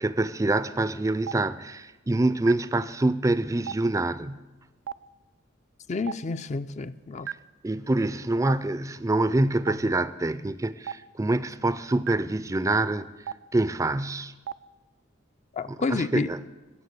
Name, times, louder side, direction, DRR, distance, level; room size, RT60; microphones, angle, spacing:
voice 1, 0.0-4.4 7.6-13.1 13.5-14.3 15.7-16.4, right 2 dB, 15° right, 0.4 m, -26 dB
Stream, 1.2-1.4 2.5-2.6 3.6-3.8 4.8-5.0 6.0-6.2 7.3-7.4 8.4-8.6 9.6-9.8 10.8-11.0 12.1-12.2 13.2-13.4 14.4-14.6, right 8 dB, 85° right, 0.4 m, -33 dB
voice 2, 5.9-7.3 15.6-16.3, left 4 dB, 40° left, 0.4 m, -29 dB
15.5 x 7.0 x 9.7 m
head